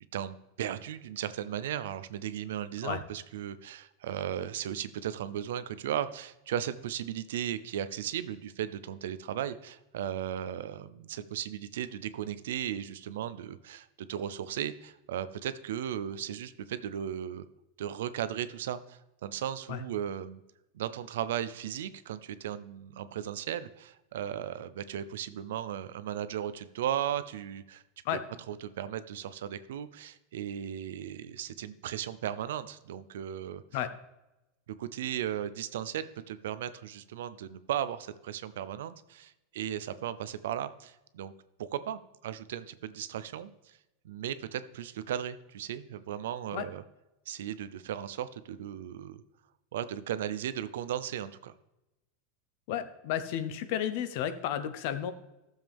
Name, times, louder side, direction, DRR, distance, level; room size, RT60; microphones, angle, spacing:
voice 1, 0.1-17.4 17.8-20.4 20.7-27.8 28.1-28.2 28.5-33.6 34.7-41.3 41.6-43.8 44.0-46.8 47.3-49.2 49.7-51.5, right 10 dB, 85° right, 14 dB, 0.6 m, -36 dB
voice 2, 52.7-55.1, left 10 dB, 50° left, 11 dB, 0.8 m, -32 dB
14.0 x 7.3 x 3.6 m, 0.96 s
supercardioid pair, 165°, 0 cm